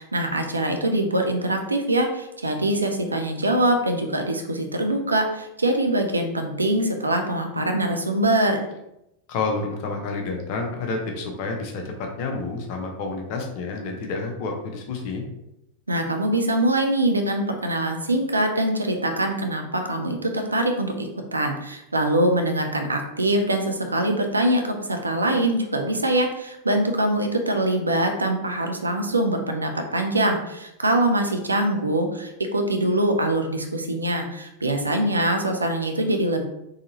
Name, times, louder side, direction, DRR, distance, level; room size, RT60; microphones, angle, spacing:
voice 1, 0.0-8.7 15.9-36.4, right 1 dB, 80° right, 4 dB, 0.5 m, -23 dB
voice 2, 9.3-15.2, left 3 dB, 45° left, 2 dB, 0.8 m, -29 dB
3.9 x 2.8 x 2.8 m, 0.86 s
figure-of-eight pair, 90°, 0 cm